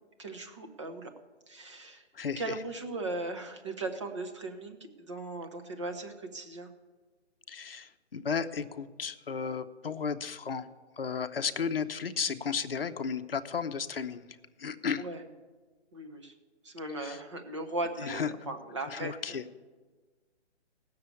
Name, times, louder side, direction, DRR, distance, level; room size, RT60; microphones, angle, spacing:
voice 1, 0.2-1.1 1.5-2.1 2.4-6.7 15.0-15.2 15.9-16.3 16.6-19.4, right 2 dB, 25° right, 5 dB, 1.0 m, -38 dB
voice 2, 2.1-2.5 7.5-10.7 11.0-15.0 17.1-17.2 18.0-18.3 18.9-19.4, left 6 dB, 55° left, 10 dB, 0.8 m, -34 dB
17.0 x 6.8 x 8.3 m, 1.4 s
hypercardioid pair, 175°, 35 cm